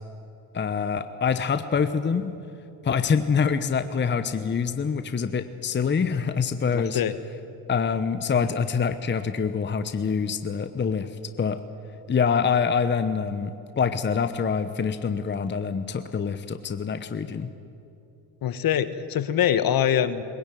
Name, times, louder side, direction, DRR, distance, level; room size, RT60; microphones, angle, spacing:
voice 1, 0.5-2.4 2.8-7.0 7.7-11.1 11.4-11.6 12.1-17.5, left 6 dB, 25° left, 10 dB, 1.0 m, -25 dB
voice 2, 6.7-7.1 18.4-20.2, left 10 dB, 45° left, 13 dB, 1.3 m, -23 dB
20.5 x 17.0 x 9.2 m, 2.9 s
hypercardioid pair, 65°, 47 cm